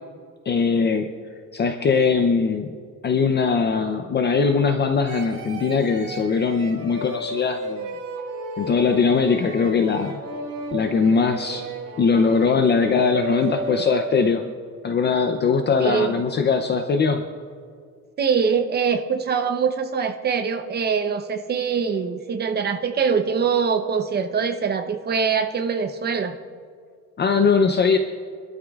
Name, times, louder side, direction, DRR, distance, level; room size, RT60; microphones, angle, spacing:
voice 1, 0.5-1.1 1.5-2.7 3.0-7.9 8.6-10.2 10.7-11.7 12.0-14.5 14.8-17.3 27.2-28.0, left 5 dB, 35° left, 6 dB, 0.6 m, -21 dB
sound 1, 5.1-14.4, right 1 dB, 80° right, 4.2 m, -34 dB
voice 2, 15.8-16.2 18.2-26.4, right 6 dB, 30° right, 7 dB, 0.8 m, -23 dB
26.0 x 12.5 x 2.4 m, 2.2 s
cardioid pair, 160°, 31 cm